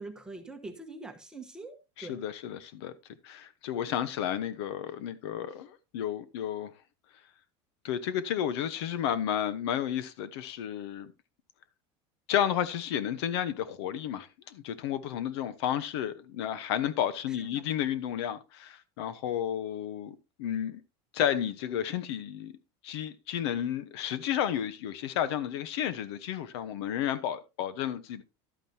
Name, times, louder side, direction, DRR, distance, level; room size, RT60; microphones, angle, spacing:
voice 1, 0.0-2.2 17.3-17.6, right 3 dB, 5° right, 1.1 m, -44 dB
voice 2, 2.0-2.9 3.2-6.7 7.8-11.1 12.3-20.8 21.1-22.5 22.8-28.2, left 10 dB, 75° left, 1.1 m, -32 dB
11.5 x 9.1 x 2.8 m
supercardioid pair, 170°, 14 cm